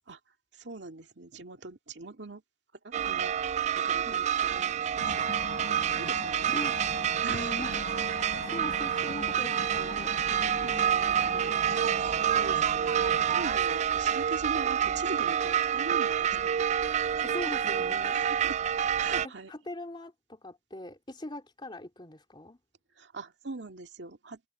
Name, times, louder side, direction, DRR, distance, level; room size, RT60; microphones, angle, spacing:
voice 1, 0.5-2.4 2.8-5.3 5.9-6.5 7.2-7.6 10.6-10.9 12.1-12.9 13.2-16.7 18.1-18.6 19.0-19.5 23.0-24.4, right 3 dB, 80° right, 2.1 m, -42 dB
sound 1, 2.9-19.3, right 8 dB, 40° right, 0.3 m, -28 dB
sound 2, 5.0-13.5, left 3 dB, 85° left, 1.3 m, -41 dB
voice 2, 6.5-6.8 7.3-7.8 8.4-11.6 17.2-18.2 19.2-22.6, left 1 dB, 25° left, 3.0 m, -42 dB
head